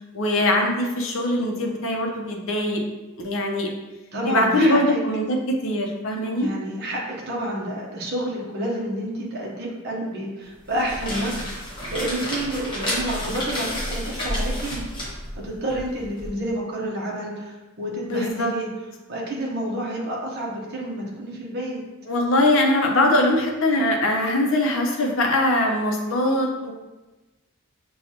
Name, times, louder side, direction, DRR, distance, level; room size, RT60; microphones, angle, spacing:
voice 1, 0.1-2.8 3.2-3.7 4.2-6.5 18.0-18.5 22.1-26.7, left 1 dB, 65° left, 1 dB, 0.7 m, -22 dB
voice 2, 4.1-5.0 6.4-14.8 15.3-18.7 19.1-21.8, right 1 dB, 50° right, -3 dB, 0.8 m, -29 dB
sound 1, 10.6-16.3, equal, 25° left, 1.2 m, -30 dB
6.5 x 2.3 x 2.8 m, 1.1 s
head